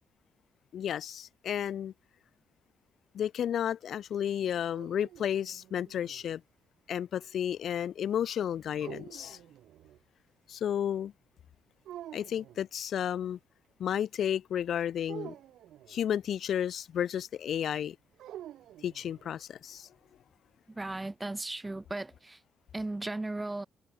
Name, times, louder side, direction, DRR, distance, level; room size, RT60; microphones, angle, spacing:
voice 1, 0.7-1.9 3.1-6.4 6.9-9.4 10.5-11.1 12.1-13.4 13.8-15.3 15.9-18.0 18.8-19.9, left 9 dB, 65° left, 1.1 m, -32 dB
sound 1, 4.5-6.3 8.8-10.0 11.8-12.6 15.1-16.1 18.2-19.4, right 12 dB, 80° right, 1.9 m, -48 dB
voice 2, 20.7-22.4 22.7-23.7, right 2 dB, 15° right, 4.8 m, -36 dB
cardioid pair, 115°, 0 cm